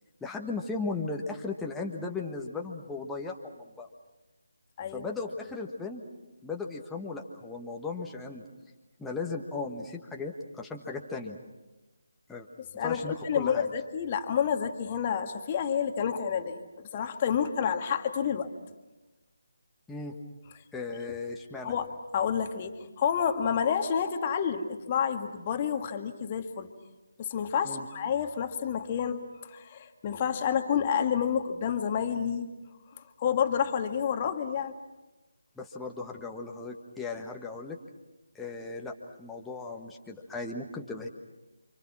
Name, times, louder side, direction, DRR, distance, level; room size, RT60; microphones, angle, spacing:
voice 1, 0.2-3.9 4.9-6.0 6.4-8.4 9.0-11.4 12.3-12.5 12.8-13.7 19.9-20.1 20.7-21.7 27.6-27.9 35.6-37.8 38.3-41.1, left 3 dB, 5° left, 0 dB, 1.4 m, -36 dB
voice 2, 4.8-5.1 12.8-18.5 21.6-26.7 27.2-32.5 33.2-34.7, left 7 dB, 25° left, 6 dB, 1.8 m, -29 dB
29.5 x 26.0 x 6.1 m, 1.1 s
figure-of-eight pair, 150°, 0 cm